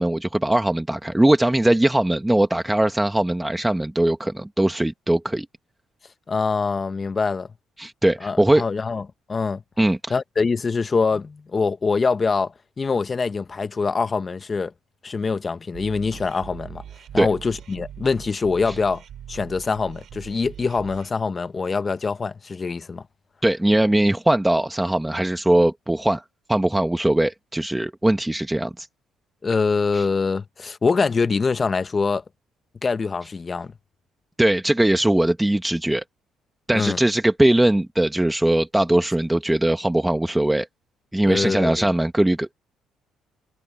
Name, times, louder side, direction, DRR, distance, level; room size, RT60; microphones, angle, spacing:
voice 1, 0.0-5.5 7.8-8.6 9.8-10.1 17.2-17.3 18.7-18.8 23.4-26.2 26.5-28.9 29.9-30.1 34.4-36.0 36.7-40.7 41.1-42.5, right 1 dB, 10° right, 1.3 m, -20 dB
voice 2, 6.3-7.5 8.2-9.6 10.1-14.7 15.0-16.8 17.1-19.0 19.3-23.0 29.4-32.2 32.8-33.7 36.7-37.0 41.2-41.9, left 4 dB, 30° left, 1.2 m, -24 dB
sound 1, 15.7-21.1, right 9 dB, 60° right, 5.1 m, -41 dB
cardioid pair, 85°, 0 cm